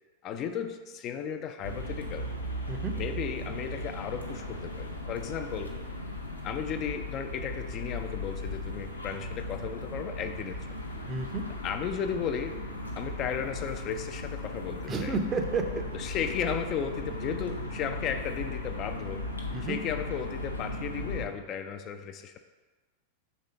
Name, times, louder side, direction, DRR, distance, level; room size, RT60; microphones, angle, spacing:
voice 1, 0.2-2.3 2.9-5.7 6.4-10.8 11.6-12.6 13.0-15.2 15.9-19.2 19.6-22.4, left 7 dB, 35° left, 7 dB, 0.3 m, -35 dB
sound 1, 1.6-21.3, left 1 dB, 85° left, 0.6 m, -37 dB
voice 2, 11.1-11.4 14.9-15.8 19.5-19.8, right 3 dB, 20° right, 6 dB, 0.6 m, -31 dB
5.2 x 3.7 x 5.1 m, 1.3 s
figure-of-eight pair, 90°, 0 cm